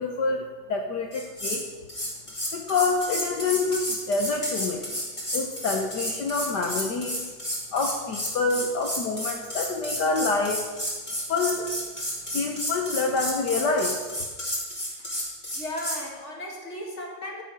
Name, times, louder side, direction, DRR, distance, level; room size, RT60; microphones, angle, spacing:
voice 1, 0.0-1.6 2.5-4.9 5.3-7.2 7.7-10.6 11.3-11.7 12.3-14.0, left 4 dB, 65° left, 3 dB, 1.5 m, -27 dB
sound 1, 1.1-1.6 1.9-16.0, equal, 15° left, 3.7 m, -31 dB
voice 2, 15.5-17.4, equal, 35° left, 0 dB, 2.4 m, -35 dB
12.5 x 8.8 x 6.1 m, 1.3 s
omnidirectional pair, 2.1 m